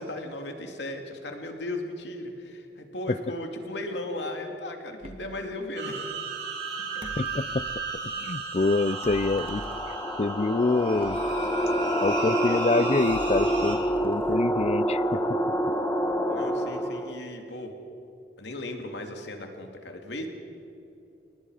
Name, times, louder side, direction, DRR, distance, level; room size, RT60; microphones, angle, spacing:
voice 1, 0.0-6.1 16.3-17.7 18.4-20.3, left 1 dB, 80° left, 3 dB, 2.6 m, -36 dB
sound 1, 5.0-5.5 7.0-8.0 9.0-10.3 11.0-12.4 13.1-15.0, right 1 dB, 30° right, 1.8 m, -45 dB
sound 2, 5.8-13.8, right 4 dB, 75° right, 4.1 m, -34 dB
voice 2, 7.0-7.7 8.2-9.7 10.2-11.2 12.0-15.4, left 3 dB, 35° left, 18 dB, 0.4 m, -26 dB
sound 3, 8.7-17.1, equal, 15° left, 1.1 m, -27 dB
29.5 x 19.0 x 4.9 m, 2.8 s
head